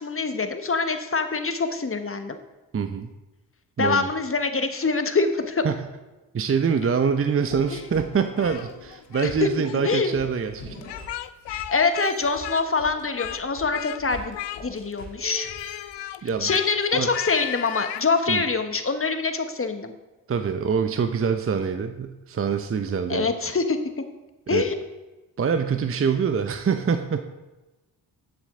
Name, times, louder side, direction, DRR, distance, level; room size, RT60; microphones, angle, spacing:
voice 1, 0.0-2.4 3.8-5.6 7.7-7.8 9.2-9.5 9.8-10.1 11.5-14.4 14.6-15.5 16.4-19.9 23.1-23.8 24.5-24.7, left 4 dB, 30° left, 8 dB, 1.1 m, -25 dB
voice 2, 2.7-3.1 3.8-4.1 5.6-5.8 6.3-10.8 16.2-16.5 16.9-17.1 18.3-18.4 20.3-23.3 24.5-24.7 25.4-27.2, right 6 dB, 30° right, 8 dB, 0.7 m, -25 dB
sound 1, 7.5-11.7 12.0-16.4, left 3 dB, 85° left, 1.7 m, -43 dB
Speech, 8.4-9.3 9.6-10.0 10.8-12.1 12.4-13.4 13.7-14.0 14.3-14.9 15.3-18.1, left 14 dB, 65° left, 0.5 m, -35 dB
10.5 x 7.3 x 3.7 m, 1.1 s
hypercardioid pair, 45°, 46 cm